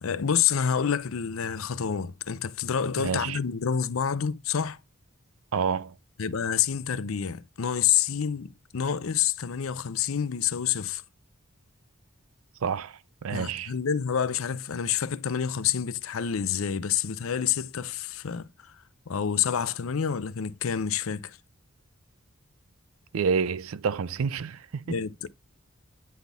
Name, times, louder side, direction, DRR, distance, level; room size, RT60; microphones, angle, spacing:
voice 1, 0.0-4.8 6.2-11.0 13.3-18.7 19.1-21.4 24.9-25.3, left 8 dB, 75° left, 0.6 m, -28 dB
voice 2, 3.0-3.4 5.5-5.9 12.6-13.7 23.1-25.0, right 6 dB, 75° right, 0.4 m, -29 dB
9.4 x 4.1 x 3.5 m
head